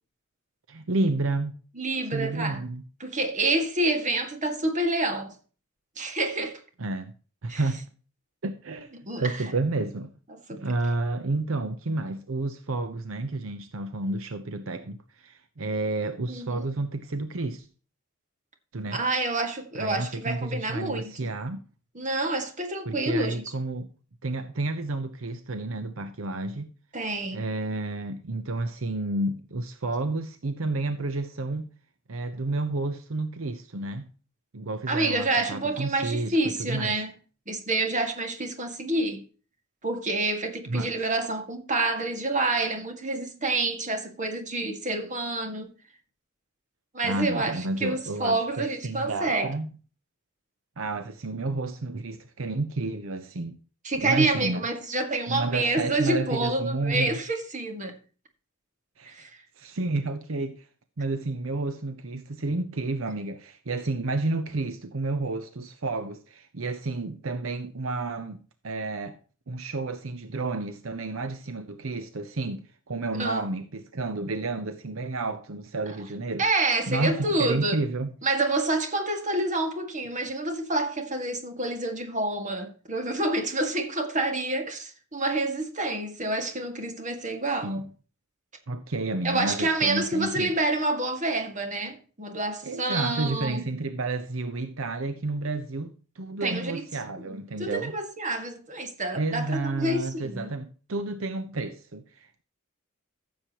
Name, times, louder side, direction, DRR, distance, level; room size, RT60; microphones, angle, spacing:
voice 1, 0.7-1.5 2.1-2.8 6.8-7.1 7.4-7.9 8.4-10.1 10.5-17.7 18.7-19.0 19.7-21.6 22.9-23.9 24.2-26.7 27.3-31.7 32.1-34.1 34.5-37.0 40.7-40.9 47.0-49.7 50.8-53.6 54.0-54.6 55.3-57.2 59.0-59.3 59.6-60.7 61.0-69.2 69.5-76.5 76.9-78.1 87.6-87.8 88.7-90.5 92.6-97.9 99.1-102.4, right 2 dB, 75° right, 0.8 m, -31 dB
voice 2, 1.8-2.6 3.0-5.3 6.0-6.6 7.5-7.6 8.9-9.5 10.3-10.6 16.3-16.7 18.9-21.4 21.9-23.5 26.9-27.4 34.9-37.1 37.5-39.2 39.8-45.7 46.9-49.5 53.8-57.9 59.1-59.4 73.2-73.4 76.4-77.8 78.2-87.8 89.2-93.6 96.4-96.8 97.3-100.5, right 2 dB, 35° right, 1.9 m, -28 dB
14.5 x 7.5 x 3.0 m
head